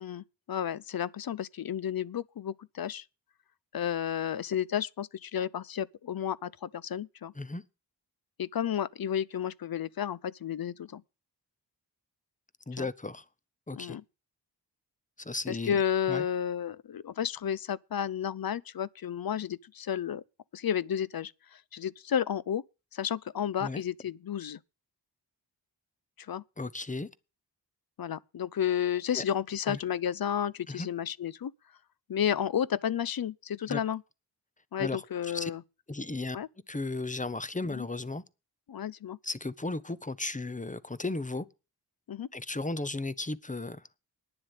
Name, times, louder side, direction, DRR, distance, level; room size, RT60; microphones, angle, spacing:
voice 1, 0.0-3.0 3.7-7.3 8.4-11.0 12.7-12.9 13.8-14.0 15.5-20.2 20.5-21.3 21.7-22.6 22.9-24.6 26.3-26.4 28.0-31.5 32.1-34.0 34.7-35.6 36.3-36.5 37.7-37.9 38.7-39.2 42.1-42.3, left 9 dB, 60° left, 0.6 m, -32 dB
voice 2, 12.7-13.3 13.7-14.0 15.2-15.8 16.1-16.2 23.6-23.8 26.6-27.1 29.1-29.2 29.7-29.8 30.7-30.9 33.7-33.8 34.8-35.5 35.9-36.4 36.7-38.2 39.2-41.5 42.3-43.9, left 2 dB, 20° left, 0.8 m, -35 dB
10.0 x 7.4 x 8.2 m
cardioid pair, 50°, 42 cm